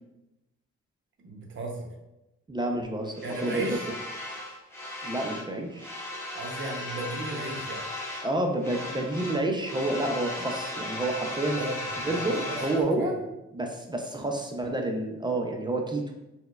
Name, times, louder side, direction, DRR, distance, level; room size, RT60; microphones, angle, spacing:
voice 1, 1.2-1.9 3.2-3.9 6.3-7.8 11.6-12.6 13.0-13.2, right 2 dB, 40° right, 1 dB, 0.7 m, -35 dB
voice 2, 2.5-3.1 3.4-3.8 5.0-5.9 8.2-11.6 12.0-13.1 13.5-16.1, right 2 dB, 15° right, 2 dB, 0.3 m, -29 dB
sound 1, 3.1-5.5 5.7-8.3 8.6-12.8, left 1 dB, 10° left, 0.9 m, -36 dB
4.3 x 2.1 x 2.2 m, 0.97 s
cardioid pair, 90°, 30 cm